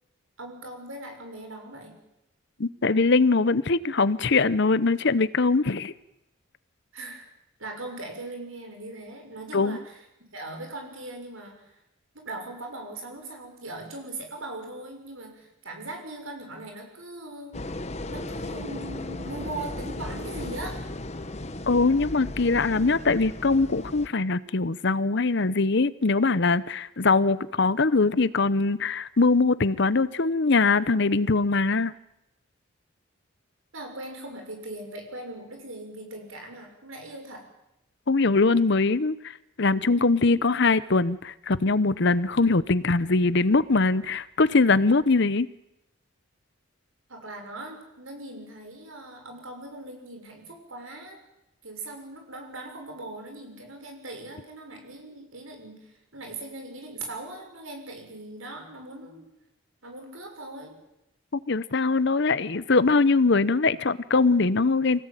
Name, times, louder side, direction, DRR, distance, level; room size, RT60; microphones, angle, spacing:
voice 1, 0.4-2.0 6.9-7.3 7.6-10.0 10.3-11.5 12.1-20.8 33.7-37.5 47.1-51.2 51.6-59.3 59.8-60.7, right 2 dB, 75° right, 3 dB, 6.5 m, -40 dB
voice 2, 2.6-5.9 9.5-9.8 21.7-31.9 38.1-45.5 61.3-65.1, left 3 dB, 55° left, 17 dB, 0.8 m, -22 dB
sound 1, 17.5-24.1, left 1 dB, 30° left, 1.1 m, -36 dB
25.0 x 17.5 x 9.1 m, 0.87 s
head